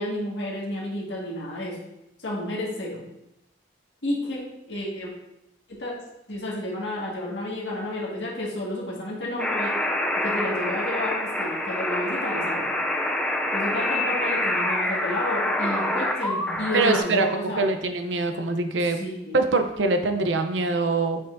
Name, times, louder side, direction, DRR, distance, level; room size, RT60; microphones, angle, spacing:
voice 1, 0.0-1.8 2.2-3.0 4.0-4.4 4.7-5.1 5.7-5.9 6.3-9.7 10.2-12.8 13.5-17.6 18.9-19.5, left 1 dB, 70° left, -4 dB, 2.0 m, -31 dB
sound 1, 9.4-17.0, left 1 dB, 5° left, 0.5 m, -26 dB
voice 2, 16.7-19.0 19.3-21.2, right 3 dB, 80° right, 6 dB, 0.7 m, -24 dB
7.3 x 5.7 x 2.6 m, 0.90 s
head